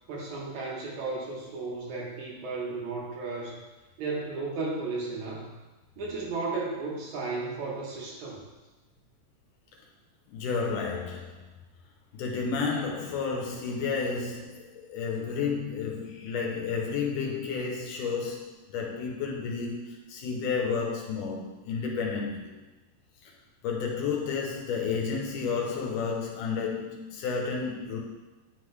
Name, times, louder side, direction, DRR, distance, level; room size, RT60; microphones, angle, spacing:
voice 1, 0.1-3.6 4.0-5.5 6.0-8.4, right 3 dB, 70° right, -3 dB, 2.2 m, -34 dB
voice 2, 10.3-11.5 12.1-22.5 23.6-28.0, left 5 dB, 80° left, 0 dB, 2.3 m, -31 dB
9.7 x 3.8 x 3.2 m, 1.1 s
omnidirectional pair, 3.8 m